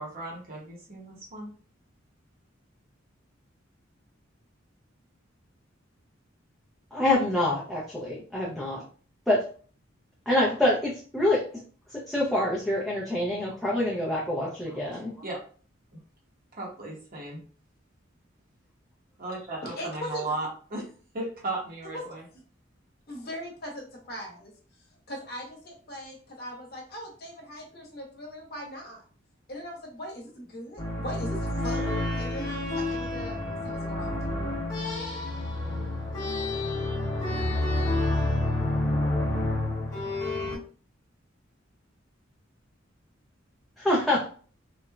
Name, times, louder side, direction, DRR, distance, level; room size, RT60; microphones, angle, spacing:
voice 1, 0.0-1.5 14.9-15.4 15.9-16.0 16.5-17.4 19.2-20.9 21.1-22.2, right 2 dB, 45° right, -2 dB, 0.9 m, -36 dB
voice 2, 6.9-8.8 9.3-9.5 10.3-11.6 11.9-15.1 43.8-44.3, left 1 dB, ahead, -6 dB, 0.5 m, -26 dB
voice 3, 19.6-20.3 21.9-22.0 22.3-22.4 23.1-24.5 25.1-29.0 29.5-33.4 33.6-34.4, equal, 55° left, -1 dB, 0.9 m, -40 dB
sound 1, 30.8-40.6, left 2 dB, 15° left, 1.1 m, -29 dB
3.0 x 2.1 x 2.3 m, 0.42 s
head